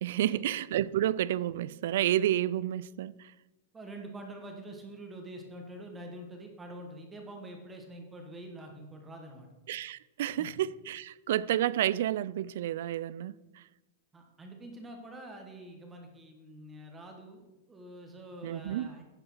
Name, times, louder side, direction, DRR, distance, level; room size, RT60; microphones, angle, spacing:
voice 1, 0.0-3.3 9.7-13.6 18.4-18.9, right 12 dB, 70° right, 0.3 m, -30 dB
voice 2, 3.7-9.5 10.4-10.5 14.1-19.0, right 1 dB, 15° right, 1.5 m, -46 dB
10.5 x 5.5 x 5.7 m
supercardioid pair, 140°, 0 cm